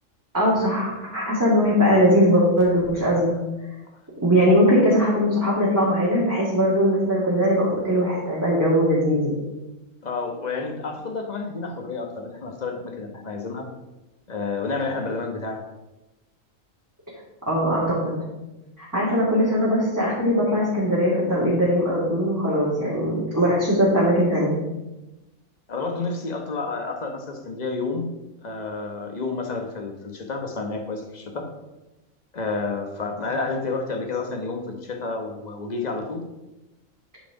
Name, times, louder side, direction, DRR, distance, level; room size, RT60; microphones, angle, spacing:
voice 1, 0.3-3.3 4.2-9.4 17.5-18.1 18.8-24.6, equal, 15° right, -9 dB, 2.1 m, -20 dB
voice 2, 10.0-13.7 14.3-15.6 25.7-28.1 28.4-31.5 32.3-36.2, left 3 dB, 35° left, 3 dB, 1.1 m, -30 dB
9.3 x 4.8 x 4.9 m, 1.0 s
omnidirectional pair, 1.3 m